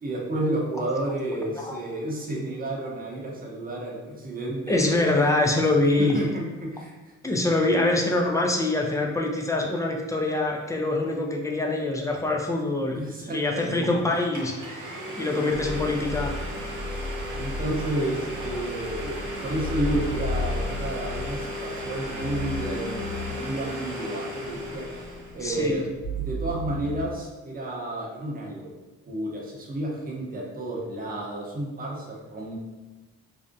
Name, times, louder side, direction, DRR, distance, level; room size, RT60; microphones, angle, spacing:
voice 1, 0.0-5.1 5.5-5.6 6.0-7.1 12.9-14.1 16.8-25.9 26.2-28.7 29.0-32.6, right 1 dB, 30° right, -2 dB, 0.7 m, -31 dB
voice 2, 4.7-6.2 7.2-14.5 14.8-16.4 25.4-25.8, left 2 dB, 10° left, 1 dB, 0.3 m, -25 dB
Domestic sounds home sounds, 14.3-25.4, equal, 75° right, 0.7 m, -36 dB
sound 1, 15.5-27.0, left 2 dB, 35° left, 1.4 m, -34 dB
2.5 x 2.0 x 2.5 m, 1.2 s
cardioid pair, 90°, 30 cm